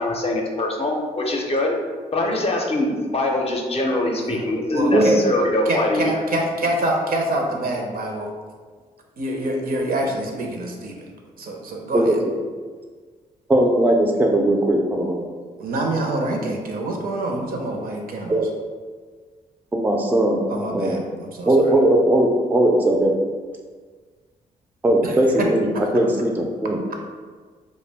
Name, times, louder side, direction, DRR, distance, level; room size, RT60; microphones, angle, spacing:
voice 1, 0.0-1.8 2.1-6.1, left 1 dB, 35° left, 0 dB, 0.6 m, -23 dB
voice 2, 4.1-5.2 5.6-8.3 9.2-11.1 11.4-12.2 15.6-18.5 20.5-21.7 25.0-25.5 25.7-25.8, right 1 dB, 60° right, 1 dB, 0.6 m, -26 dB
voice 3, 4.9-5.2 11.9-12.1 13.5-15.3 18.3-18.5 19.7-20.4 20.7-21.0 21.5-23.1 24.8-26.8, right 1 dB, 10° right, 1 dB, 0.4 m, -18 dB
2.3 x 2.1 x 3.3 m, 1.5 s
supercardioid pair, 50°, 17 cm